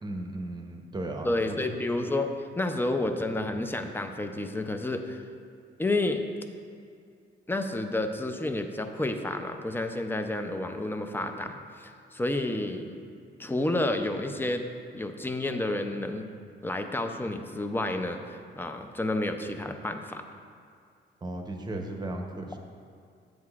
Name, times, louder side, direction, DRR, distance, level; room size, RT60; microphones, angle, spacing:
voice 1, 0.0-1.5 21.2-22.6, right 2 dB, 20° right, 3 dB, 0.8 m, -36 dB
voice 2, 1.2-2.3 2.6-5.2 5.8-6.3 7.5-13.0 13.4-14.6 14.9-16.2 16.6-20.2, left 2 dB, 10° left, 5 dB, 0.5 m, -30 dB
8.3 x 7.7 x 2.4 m, 2.3 s
cardioid pair, 90°, 20 cm